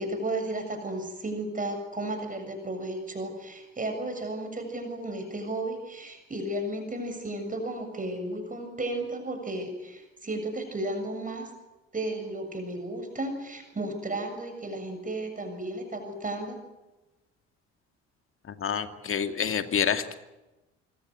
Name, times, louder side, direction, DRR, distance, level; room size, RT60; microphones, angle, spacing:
voice 1, 0.0-11.5 11.9-16.6, right 1 dB, 25° right, 5 dB, 7.3 m, -34 dB
voice 2, 18.5-20.1, left 7 dB, 35° left, 8 dB, 2.3 m, -28 dB
25.5 x 24.5 x 8.0 m, 1.1 s
figure-of-eight pair, 50°, 35 cm